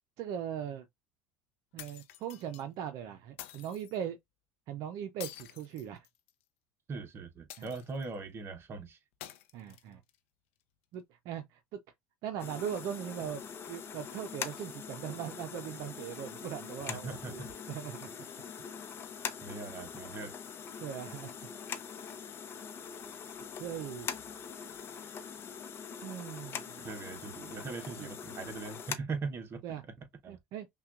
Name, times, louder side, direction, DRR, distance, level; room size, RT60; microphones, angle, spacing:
voice 1, 0.2-0.9 1.7-4.2 4.7-6.1 7.6-7.7 9.5-10.0 10.9-11.8 12.2-13.4 13.7-18.1 20.8-21.3 23.6-24.1 26.0-26.8 28.0-28.1 29.6-29.8 30.3-30.7, right 9 dB, 60° right, 0.6 m, -40 dB
sound 1, 1.8-2.6 3.4-4.0 5.2-6.4 7.5-8.2 9.2-10.2, left 13 dB, 80° left, 0.6 m, -48 dB
voice 2, 6.9-9.0 16.9-17.5 19.4-20.3 26.8-29.6 30.0-30.4, right 4 dB, 35° right, 0.9 m, -40 dB
sound 2, 12.4-29.0, left 7 dB, 35° left, 0.6 m, -43 dB
5.5 x 2.3 x 2.5 m
supercardioid pair, 95°, 7 cm